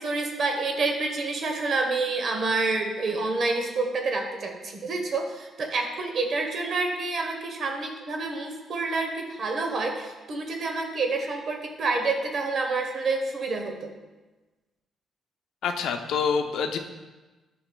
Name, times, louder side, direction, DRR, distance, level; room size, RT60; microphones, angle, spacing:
voice 1, 0.0-13.9, right 3 dB, 55° right, 3 dB, 0.9 m, -28 dB
voice 2, 15.6-16.8, left 6 dB, 80° left, 6 dB, 0.5 m, -26 dB
8.8 x 5.0 x 2.2 m, 1.2 s
cardioid pair, 90°, 0 cm